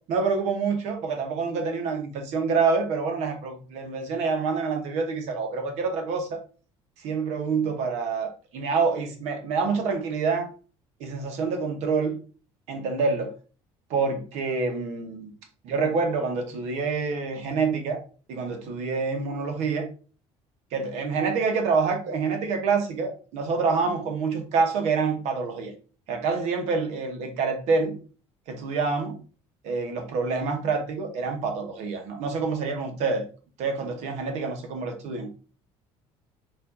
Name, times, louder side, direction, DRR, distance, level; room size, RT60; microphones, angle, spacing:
voice 1, 0.1-6.4 7.0-10.5 11.0-12.2 12.7-13.3 13.9-15.3 15.6-18.0 18.3-19.9 20.7-25.7 26.1-28.0 28.5-29.2 29.6-33.2 33.6-35.3, right 4 dB, 70° right, 0.9 m, -27 dB
4.5 x 2.5 x 2.6 m
cardioid pair, 135°, 12 cm